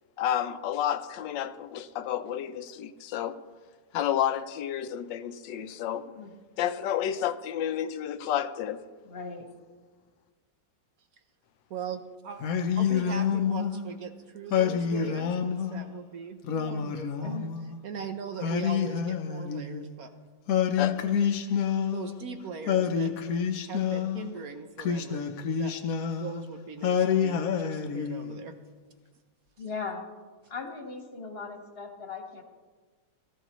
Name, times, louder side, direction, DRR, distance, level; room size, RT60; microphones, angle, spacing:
voice 1, 0.2-3.4 3.9-6.1 6.6-8.8 20.8-21.0, left 10 dB, 85° left, 1.3 m, -30 dB
voice 2, 9.0-9.5 17.2-17.5 29.6-30.0 30.5-32.4, left 4 dB, 35° left, 1.4 m, -38 dB
voice 3, 11.7-12.4 12.8-17.4 17.8-20.1 21.9-23.3 23.6-25.3 25.6-28.6, right 5 dB, 60° right, 1.1 m, -40 dB
Singing, 12.4-13.9 14.5-15.8 16.4-17.8 18.4-19.9 20.5-22.3 22.7-24.3 24.8-26.4 26.8-28.4, left 7 dB, 60° left, 1.0 m, -28 dB
17.0 x 14.0 x 3.1 m
omnidirectional pair, 1.9 m